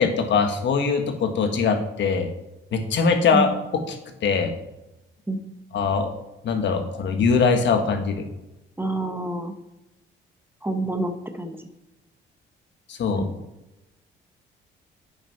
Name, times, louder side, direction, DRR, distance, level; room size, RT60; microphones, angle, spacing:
voice 1, 0.0-2.3 2.7-4.0 4.2-4.5 5.7-6.1 6.4-8.2 12.9-13.3, left 5 dB, 65° left, 5 dB, 1.4 m, -22 dB
voice 2, 8.8-9.5 10.6-11.7, right 2 dB, 10° right, 7 dB, 1.1 m, -27 dB
8.6 x 5.8 x 5.7 m, 0.96 s
cardioid pair, 90°, 20 cm